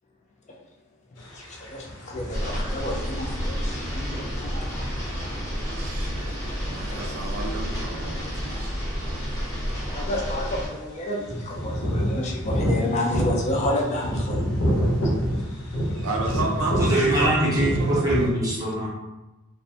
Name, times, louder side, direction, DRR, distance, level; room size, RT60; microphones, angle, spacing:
sound 1, 1.2-6.8 8.6-8.7 9.0-9.5 9.9-10.0 10.1-10.4 11.2-18.3, equal, 80° left, 0.6 m, -28 dB
voice 1, 1.2-4.5 6.9-7.3 9.9-14.4 16.9-17.0, left 1 dB, 30° left, -1 dB, 0.3 m, -30 dB
sound 2, 2.3-10.7, equal, 15° left, 0.8 m, -30 dB
voice 2, 5.8-8.7 9.2-9.4 16.0-18.3, right 2 dB, 85° right, 1 dB, 0.4 m, -32 dB
voice 3, 16.8-18.9, right 1 dB, 15° right, -6 dB, 0.7 m, -23 dB
2.4 x 2.1 x 2.6 m, 1.1 s
head